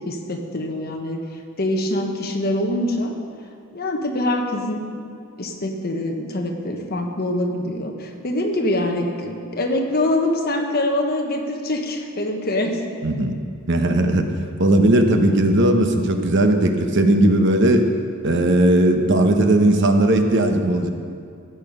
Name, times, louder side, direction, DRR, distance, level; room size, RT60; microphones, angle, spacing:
voice 1, 0.0-1.2 1.6-3.1 3.7-4.9 5.4-12.8, left 1 dB, 45° left, 3 dB, 1.3 m, -24 dB
voice 2, 13.0-13.4 13.7-14.2 14.6-17.9 18.2-20.9, right 1 dB, 55° right, 5 dB, 1.0 m, -17 dB
15.0 x 8.9 x 5.5 m, 2.4 s
head